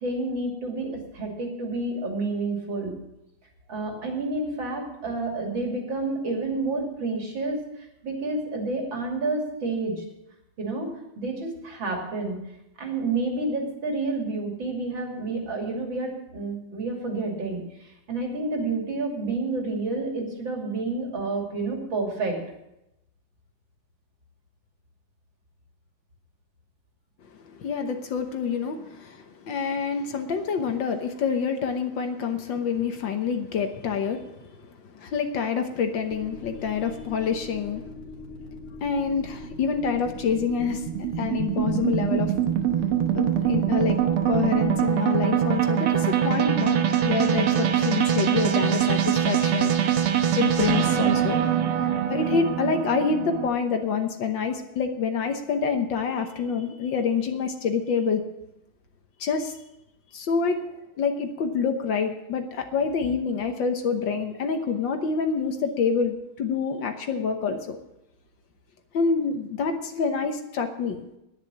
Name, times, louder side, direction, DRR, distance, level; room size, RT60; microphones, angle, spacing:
voice 1, 0.0-2.9 3.7-7.7 8.0-10.0 10.6-12.4 12.8-17.6 18.1-22.4, right 3 dB, 60° right, 0 dB, 3.5 m, -29 dB
voice 2, 27.5-37.8 38.8-42.3 43.1-44.0 44.3-49.7 50.4-51.4 52.1-58.2 59.2-59.6 60.1-60.6 61.0-67.8 68.9-71.1, left 6 dB, 65° left, 6 dB, 1.7 m, -27 dB
sound 1, 36.1-44.8, left 3 dB, 45° left, 2.4 m, -41 dB
sound 2, 39.3-53.5, right 10 dB, 80° right, 1.9 m, -23 dB
10.5 x 10.5 x 7.4 m, 0.88 s
omnidirectional pair, 2.4 m